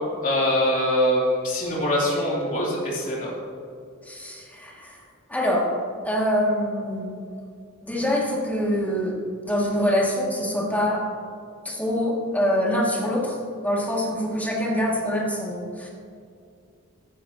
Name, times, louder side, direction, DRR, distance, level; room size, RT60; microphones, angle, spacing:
voice 1, 0.2-3.3, left 1 dB, 40° left, -5 dB, 3.3 m, -23 dB
voice 2, 4.1-5.0 5.3-5.6 6.0-7.1 7.8-9.1 9.4-11.0 11.6-13.4 13.6-15.9, equal, 10° left, -4 dB, 2.2 m, -24 dB
15.5 x 11.5 x 2.9 m, 2.3 s
head